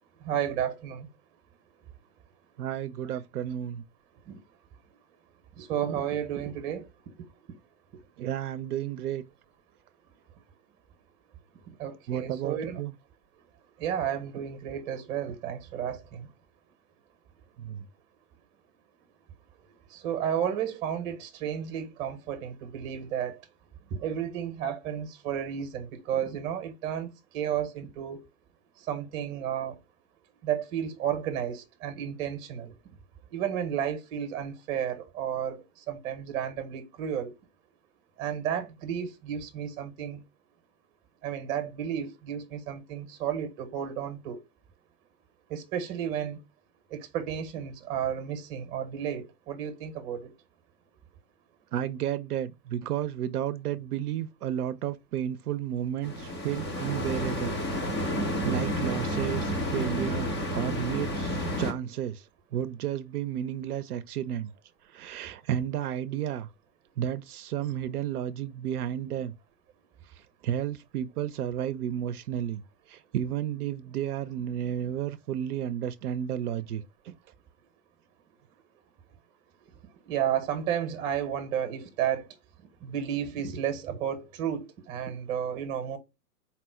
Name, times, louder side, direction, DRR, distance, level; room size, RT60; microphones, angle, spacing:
voice 1, 0.2-1.1 4.3-4.4 5.6-6.9 7.2-7.3 7.9-8.0 11.8-12.8 13.8-16.3 19.9-23.4 23.9-28.2 28.8-29.8 30.4-32.7 33.3-37.3 38.2-40.2 41.2-44.4 45.5-46.4 46.9-50.3 80.1-82.3 82.8-86.0, right 9 dB, 25° right, 0.7 m, -32 dB
voice 2, 2.6-3.8 8.2-9.2 12.1-13.0 17.6-17.9 51.7-57.6 58.4-62.3 62.5-64.5 64.9-66.5 67.0-69.3 70.4-72.6 72.9-77.1, right 10 dB, 70° right, 0.5 m, -32 dB
sound 1, 56.0-61.7, equal, 20° left, 0.4 m, -30 dB
4.2 x 2.0 x 4.2 m
hypercardioid pair, 130°, 48 cm